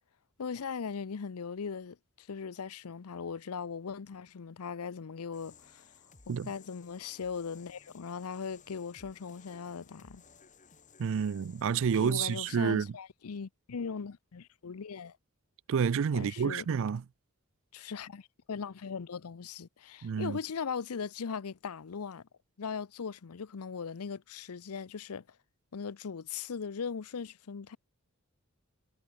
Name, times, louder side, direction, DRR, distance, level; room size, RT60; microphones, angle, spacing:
voice 1, 0.4-5.8 6.3-10.2 12.0-15.1 16.1-16.7 17.7-22.2 22.6-25.2 25.7-27.8, left 6 dB, 80° left, 0.6 m, -39 dB
sound 1, 5.3-12.4, left 5 dB, 35° left, 2.4 m, -58 dB
voice 2, 11.0-12.9 15.7-17.0 20.0-20.4, right 6 dB, 60° right, 0.4 m, -29 dB
head